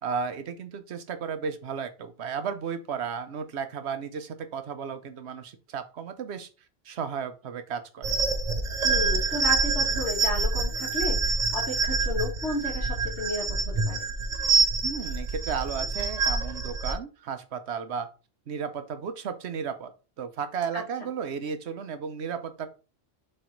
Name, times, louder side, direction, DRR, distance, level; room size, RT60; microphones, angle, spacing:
voice 1, 0.0-6.5 6.8-8.2 14.8-18.1 18.5-19.9 20.2-22.7, right 6 dB, 65° right, 9 dB, 1.1 m, -34 dB
sound 1, 8.0-16.9, right 4 dB, 40° right, 0.8 m, -26 dB
voice 2, 8.8-14.1 20.7-20.8, left 2 dB, 65° left, 0 dB, 2.2 m, -33 dB
6.5 x 3.3 x 4.5 m, 0.33 s
omnidirectional pair, 1.2 m